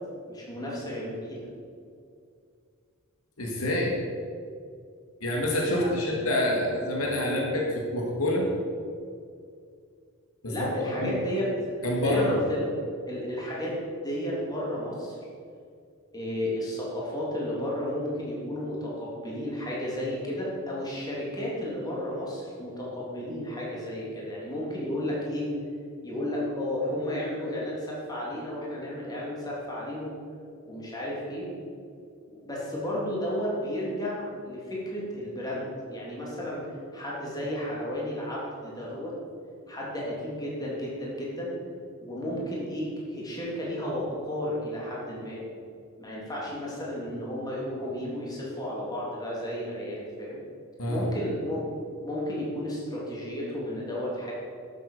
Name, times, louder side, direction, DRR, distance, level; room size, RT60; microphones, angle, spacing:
voice 1, 0.3-1.4 5.7-6.3 7.5-7.6 10.5-12.7 13.1-13.7 14.0-15.2 16.1-25.5 26.0-30.2 30.6-31.5 32.3-36.6 36.9-39.1 39.7-41.5 42.0-45.4 46.0-50.4 50.9-51.6 52.0-54.3, left 1 dB, 20° left, -5 dB, 3.4 m, -33 dB
voice 2, 3.4-3.9 5.2-7.6 7.9-8.5 10.4-10.5 11.0-11.1 11.8-12.3 50.8-51.0, left 1 dB, 80° left, -1 dB, 2.3 m, -26 dB
12.0 x 7.7 x 6.9 m, 2.3 s
head